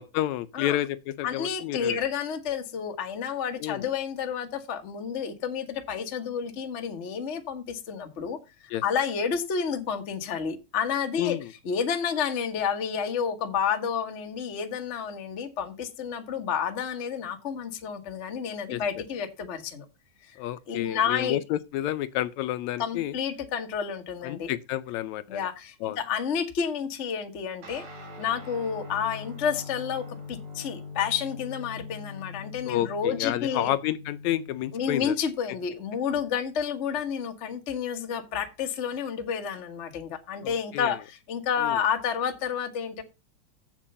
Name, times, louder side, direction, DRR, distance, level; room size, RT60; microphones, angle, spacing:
voice 1, 0.0-2.0 3.6-3.9 8.7-8.8 11.2-11.5 18.7-18.8 20.4-23.2 24.2-25.4 25.8-26.0 32.6-35.2 40.4-41.0 41.6-41.8, left 13 dB, 80° left, 1.9 m, -30 dB
voice 2, 1.2-8.4 8.8-11.4 11.6-19.8 20.2-20.4 20.7-21.4 22.8-24.5 25.3-27.8 28.2-33.7 34.7-43.0, left 7 dB, 40° left, 1.0 m, -30 dB
Guitar, 27.6-35.3, left 4 dB, 85° right, 4.2 m, -42 dB
7.7 x 7.4 x 5.4 m
omnidirectional pair, 3.4 m